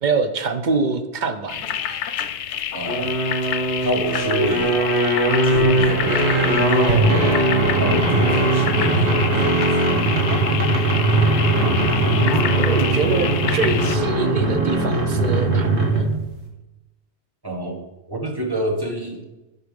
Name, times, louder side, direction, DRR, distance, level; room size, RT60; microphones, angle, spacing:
voice 1, 0.0-2.0 12.2-16.2, right 4 dB, 50° right, 8 dB, 0.7 m, -25 dB
sound 1, 1.5-14.0, left 10 dB, 90° left, 0.9 m, -28 dB
voice 2, 2.7-3.1 3.8-4.8 5.4-6.9 7.8-10.0 17.4-17.8 18.1-19.2, right 1 dB, 20° right, 0 dB, 1.4 m, -28 dB
sound 2, 2.8-16.2, right 2 dB, 80° right, 1.8 m, -19 dB
11.0 x 4.4 x 5.2 m, 1.0 s
omnidirectional pair, 1.1 m